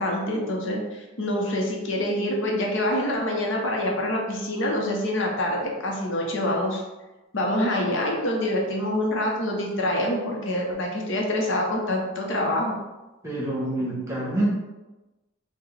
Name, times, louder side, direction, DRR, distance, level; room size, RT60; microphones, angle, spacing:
voice 1, 0.0-6.8 7.3-12.7, left 1 dB, 60° left, -1 dB, 0.7 m, -26 dB
voice 2, 13.2-14.5, right 1 dB, 15° right, -5 dB, 1.1 m, -27 dB
5.7 x 2.1 x 3.2 m, 1.1 s
head